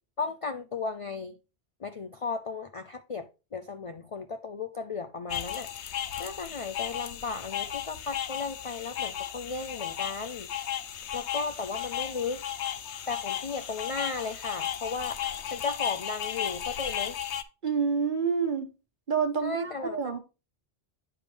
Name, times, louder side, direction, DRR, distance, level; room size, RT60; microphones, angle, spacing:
voice 1, 0.2-1.3 1.8-10.5 11.1-12.4 13.1-17.2 19.4-20.1, left 4 dB, 45° left, 0.4 m, -35 dB
sound 1, 5.3-17.4, left 10 dB, 90° left, 1.0 m, -35 dB
voice 2, 17.6-18.7 19.1-20.2, right 6 dB, 45° right, 1.4 m, -28 dB
9.6 x 5.2 x 3.3 m
omnidirectional pair, 1.1 m